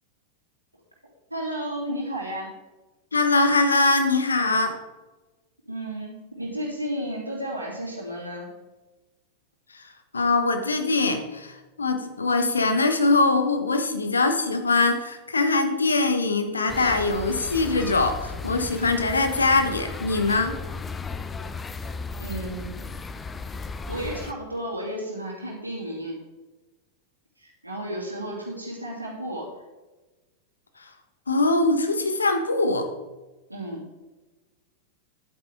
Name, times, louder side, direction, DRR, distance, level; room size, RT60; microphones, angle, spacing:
voice 1, 1.3-2.5 5.6-8.5 22.2-22.7 23.9-26.2 27.4-29.5 33.5-33.8, right 1 dB, 85° right, -2 dB, 2.9 m, -33 dB
voice 2, 3.1-4.8 10.1-20.6 31.3-32.9, left 3 dB, 75° left, 7 dB, 1.2 m, -22 dB
sound 1, 16.7-24.3, left 4 dB, 15° left, 0.6 m, -35 dB
11.0 x 8.8 x 3.6 m, 1.1 s
figure-of-eight pair, 90°, 0 cm